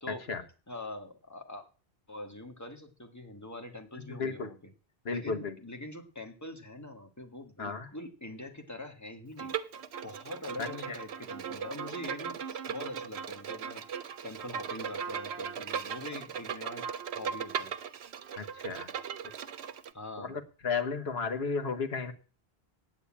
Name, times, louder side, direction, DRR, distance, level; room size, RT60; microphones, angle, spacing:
voice 1, 0.1-0.4 3.9-4.5 5.0-5.5 7.6-7.9 10.6-11.0 18.4-18.9 20.2-22.1, left 5 dB, 80° left, 6 dB, 1.5 m, -34 dB
voice 2, 0.7-1.7 2.1-4.6 5.1-9.5 10.0-13.9 14.2-16.9 17.1-17.8 19.9-20.4, left 2 dB, 15° left, 4 dB, 1.7 m, -43 dB
Bowed string instrument, 9.4-19.9, right 7 dB, 85° right, 1.0 m, -38 dB
9.1 x 8.3 x 8.6 m, 0.37 s
omnidirectional pair, 1.1 m